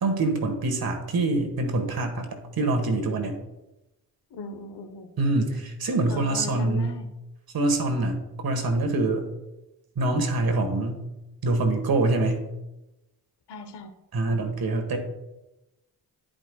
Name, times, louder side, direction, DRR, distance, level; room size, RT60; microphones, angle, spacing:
voice 1, 0.0-2.3 2.6-3.3 5.2-7.0 7.5-9.3 9.9-11.0 11.4-12.5 14.1-15.0, right 2 dB, 60° right, 5 dB, 1.5 m, -25 dB
voice 2, 4.3-5.1 6.1-7.1 13.5-13.9 14.3-14.4, left 3 dB, 75° left, 7 dB, 1.0 m, -38 dB
10.5 x 5.2 x 2.3 m, 0.98 s
supercardioid pair, 55°, 42 cm